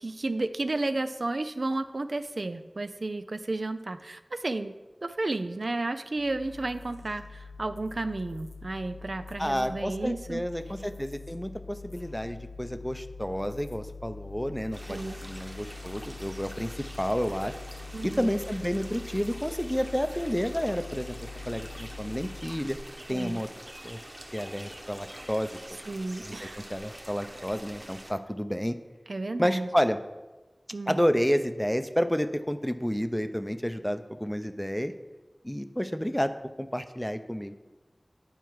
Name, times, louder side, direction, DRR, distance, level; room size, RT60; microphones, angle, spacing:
voice 1, 0.0-10.4 14.9-15.2 17.9-18.4 23.1-23.4 25.9-26.6 29.1-29.7 30.7-31.0, right 2 dB, 80° right, 10 dB, 0.4 m, -32 dB
sound 1, 6.2-22.7, left 4 dB, 60° left, 0.7 m, -44 dB
voice 2, 9.4-17.6 18.0-21.2 21.5-22.8 23.1-23.5 23.8-24.0 24.3-25.5 26.2-28.8 29.4-30.0 30.9-34.9 35.4-36.3 36.6-37.5, equal, 5° left, 9 dB, 0.5 m, -30 dB
sound 2, 14.7-28.1, right 1 dB, 25° right, 1.1 m, -45 dB
9.1 x 4.6 x 4.6 m, 1.2 s
wide cardioid pair, 45°, 0 cm